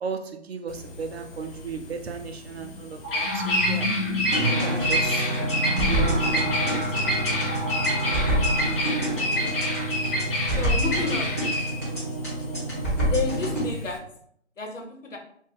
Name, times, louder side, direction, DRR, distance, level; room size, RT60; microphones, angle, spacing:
voice 1, 0.0-3.9 4.5-5.3 5.9-6.7, right 5 dB, 60° right, 6 dB, 0.5 m, -35 dB
Bird vocalization bird call bird song, 0.7-14.0, left 1 dB, 50° left, 1.0 m, -28 dB
sound 1, 1.8-1.9 2.6-11.1, left 1 dB, 20° right, 1.0 m, -33 dB
sound 2, 4.3-13.7, right 1 dB, 10° left, 0.6 m, -27 dB
voice 2, 9.0-9.7 10.5-11.4 13.0-14.0 14.6-15.2, left 4 dB, 85° left, 2 dB, 0.9 m, -31 dB
2.3 x 2.2 x 3.4 m, 0.67 s
figure-of-eight pair, 150°, 37 cm